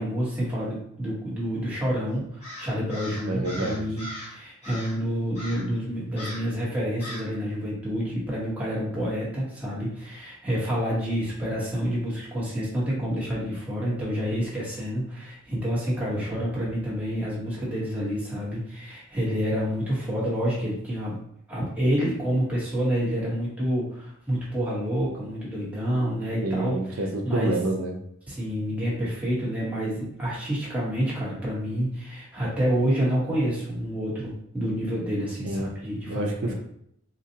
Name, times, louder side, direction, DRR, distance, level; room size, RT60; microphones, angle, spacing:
voice 1, 0.0-21.2 21.5-26.7 27.2-27.5 28.3-36.5, equal, 5° right, -7 dB, 1.2 m, -28 dB
Crow, 2.4-4.3 4.6-5.0 5.3-5.7 6.1-6.5 7.0-7.3, left 1 dB, 30° left, 1.1 m, -39 dB
voice 2, 3.2-3.9 26.4-28.0 35.4-35.7 36.1-36.5, right 2 dB, 85° right, 2 dB, 0.6 m, -28 dB
3.9 x 2.4 x 2.8 m, 0.70 s
head